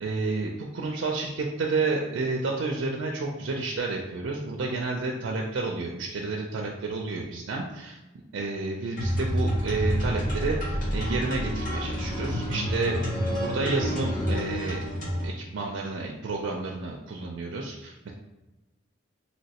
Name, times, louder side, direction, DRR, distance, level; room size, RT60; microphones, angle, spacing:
voice 1, 0.0-8.0 8.3-14.8 15.2-18.1, right 3 dB, 75° right, 0 dB, 0.4 m, -30 dB
sound 1, 9.0-15.3, equal, 45° left, 1.3 m, -28 dB
3.0 x 3.0 x 2.8 m, 1.1 s
head